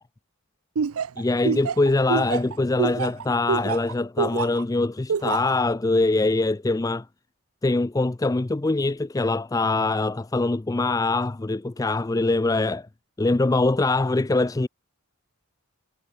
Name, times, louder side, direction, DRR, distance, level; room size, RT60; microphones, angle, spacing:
Laughter, 0.8-4.6 5.1-5.5, right 6 dB, 75° right, 0.5 m, -26 dB
voice 1, 1.2-7.1 7.6-12.9 13.2-14.7, left 2 dB, 15° left, 0.3 m, -23 dB
head